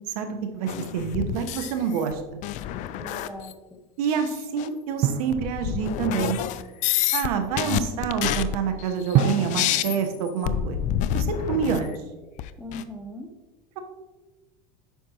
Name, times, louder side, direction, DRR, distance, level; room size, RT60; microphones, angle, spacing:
voice 1, 0.1-2.4 4.0-6.4 7.1-10.8 11.1-11.9, right 7 dB, 80° right, 6 dB, 1.0 m, -27 dB
sound 1, 0.7-2.1 2.4-3.5 4.1-4.3 4.6-4.7 5.3-7.3 7.5-11.9 12.4-12.8, left 11 dB, 40° left, 0.4 m, -28 dB
voice 2, 2.9-3.8 7.5-8.0 12.6-13.3, left 1 dB, 5° left, 3 dB, 0.6 m, -40 dB
Drum, 5.0-6.5 9.1-11.3, right 9 dB, 45° right, 0.4 m, -28 dB
9.3 x 6.0 x 2.9 m, 1.2 s
supercardioid pair, 140°, 19 cm